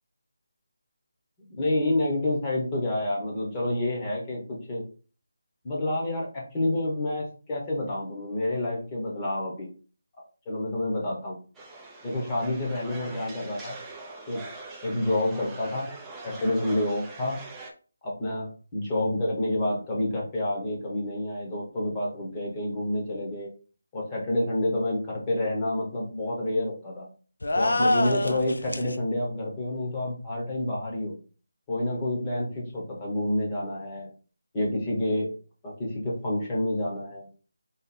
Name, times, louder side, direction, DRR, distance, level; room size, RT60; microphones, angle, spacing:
voice 1, 1.5-4.8 5.6-9.7 10.5-11.4 12.0-13.8 14.3-14.4 14.8-15.9 16.2-17.4 18.0-23.5 23.9-27.1 27.5-31.1 31.7-34.1 34.5-35.3 35.6-37.3, left 1 dB, 15° left, -3 dB, 0.9 m, -28 dB
sound 1, 11.5-17.7, right 3 dB, 5° right, 0.4 m, -43 dB
sound 2, 27.4-29.0, left 2 dB, 80° left, 0.6 m, -25 dB
3.9 x 2.5 x 4.1 m, 0.38 s
figure-of-eight pair, 175°, 0 cm